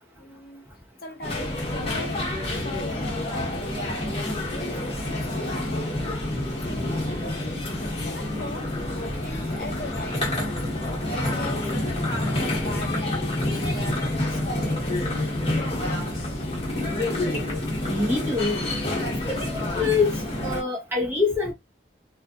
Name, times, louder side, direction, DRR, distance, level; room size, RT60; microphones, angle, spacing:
voice 1, 0.1-0.7 1.0-6.2 6.6-7.5 7.8-10.6 11.1-12.1 12.3-16.4, left 2 dB, 55° left, 0.7 m, -41 dB
sound 1, 1.2-20.6, left 1 dB, 35° left, 1.0 m, -28 dB
voice 2, 17.9-18.6 19.3-21.5, left 4 dB, 15° right, 0.9 m, -25 dB
2.8 x 2.4 x 2.4 m
head